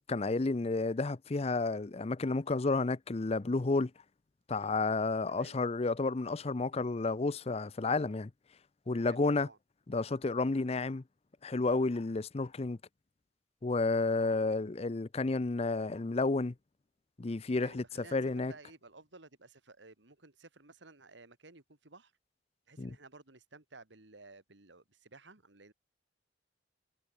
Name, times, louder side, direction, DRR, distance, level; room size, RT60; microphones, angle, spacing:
voice 1, 0.0-3.9 4.5-8.3 8.9-9.5 9.9-11.0 11.4-12.8 13.6-16.5 17.2-18.5 22.8-23.0, left 3 dB, 35° left, 0.6 m, -31 dB
voice 2, 9.0-9.6 17.5-22.1 22.7-25.7, right 3 dB, 75° right, 2.5 m, -55 dB
head